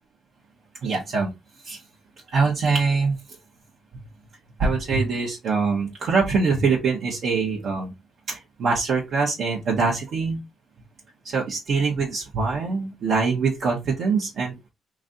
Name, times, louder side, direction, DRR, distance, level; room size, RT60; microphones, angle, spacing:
voice 1, 0.8-1.3 1.6-1.8 2.3-3.1 4.6-7.9 8.3-10.4 11.2-14.6, right 4 dB, 65° right, -3 dB, 1.1 m, -23 dB
3.1 x 2.7 x 3.8 m, 0.22 s
cardioid pair, 90°, 0 cm